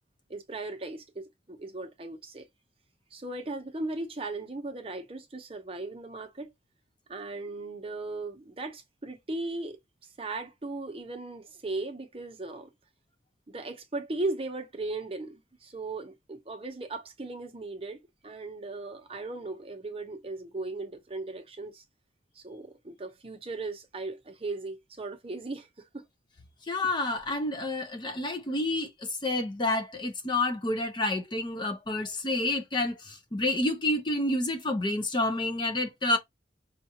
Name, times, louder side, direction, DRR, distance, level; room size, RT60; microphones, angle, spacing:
voice 1, 0.3-2.5 3.1-6.5 7.1-9.8 10.2-12.7 13.5-21.8 22.4-26.0, right 2 dB, 30° right, 0.8 m, -37 dB
voice 2, 26.7-28.9 29.2-36.2, left 2 dB, 25° left, 0.5 m, -29 dB
5.5 x 2.4 x 2.9 m
head